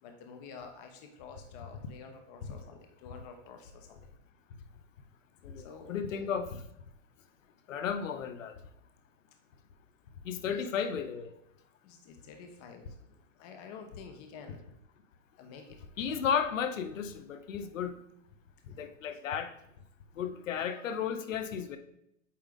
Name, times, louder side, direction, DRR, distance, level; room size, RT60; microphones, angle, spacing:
voice 1, 0.0-4.1 5.6-6.3 10.4-10.9 11.8-14.6 15.4-15.8, left 5 dB, 35° left, 5 dB, 1.0 m, -50 dB
voice 2, 5.4-6.5 7.7-8.6 10.2-11.3 16.0-18.0 18.7-19.5 20.2-21.8, left 7 dB, 90° left, 9 dB, 0.8 m, -34 dB
8.6 x 3.6 x 3.6 m, 0.78 s
hypercardioid pair, 155°, 38 cm